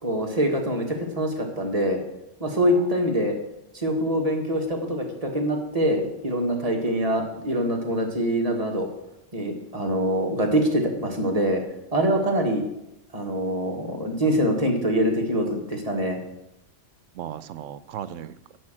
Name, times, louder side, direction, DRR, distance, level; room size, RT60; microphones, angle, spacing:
voice 1, 0.0-2.0 2.4-3.4 3.7-8.9 9.3-11.6 11.9-12.7 13.1-16.2, equal, 30° right, 1 dB, 1.6 m, -24 dB
voice 2, 2.5-2.9 17.1-18.6, right 10 dB, 80° right, 15 dB, 1.0 m, -37 dB
11.0 x 5.0 x 7.5 m, 0.84 s
omnidirectional pair, 1.3 m